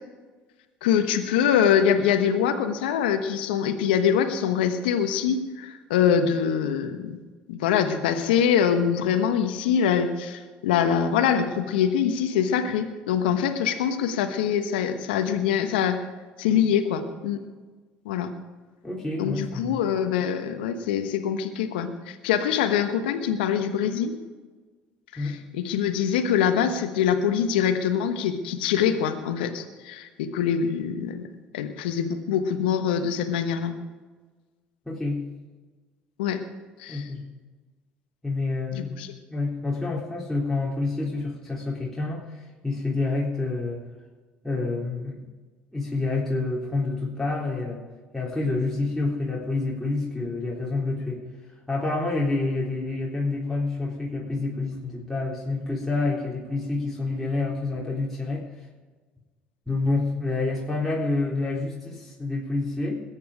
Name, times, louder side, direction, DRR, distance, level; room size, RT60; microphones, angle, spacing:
voice 1, 0.8-7.1 7.5-16.0 16.4-17.4 18.0-18.3 19.2-24.2 25.1-31.3 31.5-33.7 36.2-36.4 36.8-37.1 38.7-39.1, left 8 dB, 80° left, 8 dB, 1.2 m, -24 dB
voice 2, 18.8-19.8 25.2-25.4 34.9-35.3 36.9-37.2 38.2-38.9 39.3-43.8 44.4-45.2 45.7-47.8 48.1-51.2 51.7-58.4 59.7-63.0, left 3 dB, 5° left, -5 dB, 3.7 m, -28 dB
21.0 x 8.8 x 5.0 m, 1.3 s
hypercardioid pair, 60°, 5 cm